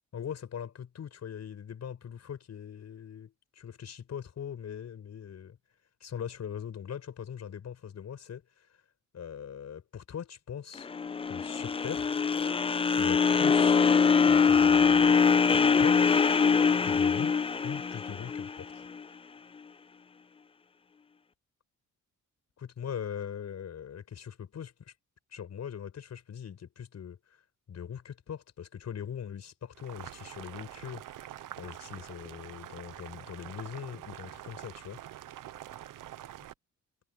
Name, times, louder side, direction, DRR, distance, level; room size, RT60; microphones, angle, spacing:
voice 1, 0.1-5.6 6.0-8.7 9.1-10.9 11.3-12.3 13.0-13.8 14.3-16.3 16.8-17.4 17.6-18.9 22.6-24.9 25.3-27.4 27.7-31.3 31.6-35.0, left 8 dB, 55° left, 6.5 m, -41 dB
sound 1, 10.8-19.0, left 5 dB, 20° left, 0.4 m, -23 dB
Boiling, 29.8-36.5, right 12 dB, 80° right, 0.9 m, -45 dB
wide cardioid pair, 155°, 32 cm